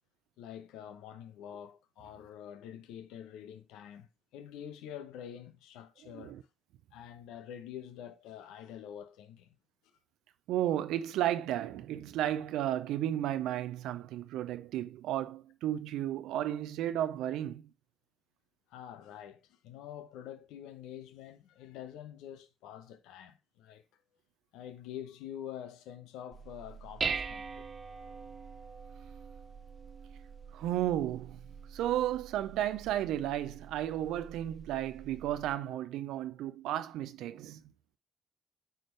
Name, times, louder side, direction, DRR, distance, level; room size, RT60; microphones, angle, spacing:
voice 1, 0.4-6.4 6.9-9.5 18.7-23.8 24.5-27.7, left 10 dB, 80° left, 0.8 m, -46 dB
voice 2, 10.5-17.7 30.5-31.4 31.7-37.6, right 12 dB, 75° right, 0.5 m, -33 dB
Dishes pots and pans, 26.3-35.6, right 5 dB, 45° right, 0.8 m, -43 dB
9.1 x 5.1 x 3.2 m
hypercardioid pair, 45°, 0 cm